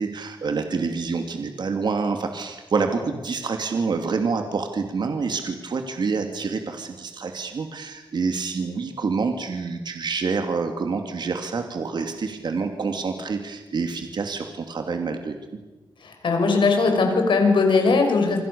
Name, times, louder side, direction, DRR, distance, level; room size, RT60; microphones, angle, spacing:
voice 1, 0.0-15.4, right 4 dB, 65° right, 5 dB, 2.7 m, -27 dB
voice 2, 16.0-18.4, left 4 dB, 85° left, 4 dB, 6.2 m, -19 dB
28.5 x 26.0 x 7.0 m, 1.1 s
wide cardioid pair, 130°, 8 cm